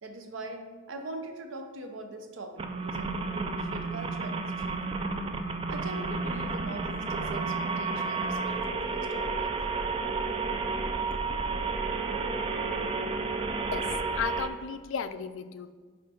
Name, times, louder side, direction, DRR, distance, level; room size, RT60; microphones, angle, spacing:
voice 1, 0.0-4.9 5.7-9.7, right 2 dB, 70° right, 5 dB, 0.7 m, -42 dB
sound 1, 2.6-14.5, right 4 dB, 25° right, 0.4 m, -31 dB
voice 2, 14.1-15.7, left 7 dB, 65° left, 11 dB, 0.4 m, -34 dB
6.3 x 4.4 x 4.3 m, 1.5 s
head